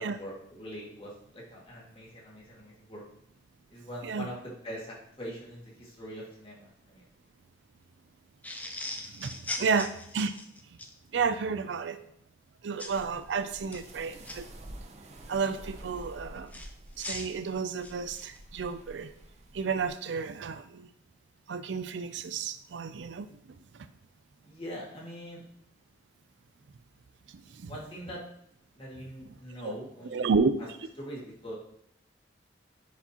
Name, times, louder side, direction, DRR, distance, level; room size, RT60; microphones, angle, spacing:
voice 1, 0.0-3.0 3.7-7.0 9.6-9.7 24.4-25.4 27.7-28.2 28.7-30.4 31.0-31.5, equal, 30° left, -4 dB, 2.0 m, -43 dB
sound 1, 8.4-10.9 12.8-13.0 13.6-14.4 16.5-18.4, left 2 dB, 10° left, 0.5 m, -40 dB
voice 2, 9.1-10.3 11.1-12.0 12.6-14.5 15.3-16.7 17.0-19.1 19.5-20.9 21.5-23.9 27.3-27.7 29.6-29.7 30.1-30.5, right 5 dB, 70° right, 11 dB, 0.4 m, -31 dB
sound 2, 12.9-19.9, right 1 dB, 35° right, 0.7 m, -49 dB
10.0 x 4.8 x 2.9 m, 0.72 s
head